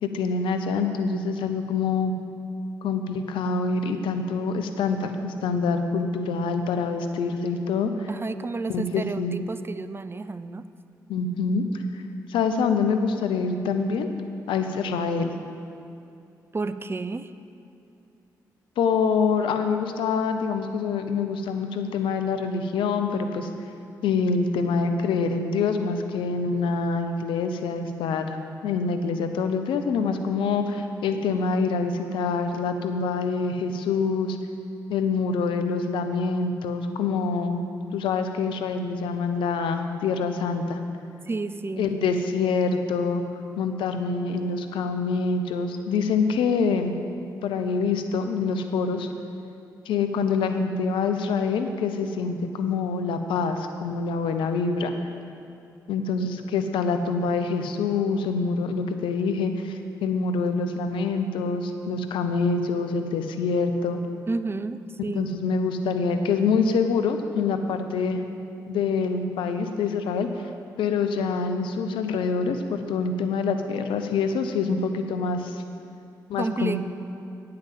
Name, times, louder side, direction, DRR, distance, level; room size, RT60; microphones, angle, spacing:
voice 1, 0.0-2.1 2.8-8.1 8.7-9.4 11.1-12.0 12.3-14.1 14.5-15.3 18.8-23.5 24.0-34.4 34.9-37.6 37.9-40.8 41.8-43.2 43.6-47.0 47.4-49.1 49.9-54.9 55.9-64.0 65.1-68.2 68.7-70.3 70.8-75.6 76.3-76.8, left 4 dB, 75° left, 7 dB, 0.6 m, -25 dB
voice 2, 8.1-10.7 16.5-17.3 41.3-41.9 64.3-65.4 76.3-76.8, right 3 dB, 30° right, 12 dB, 0.5 m, -31 dB
8.8 x 5.8 x 7.3 m, 2.6 s
hypercardioid pair, 40°, 9 cm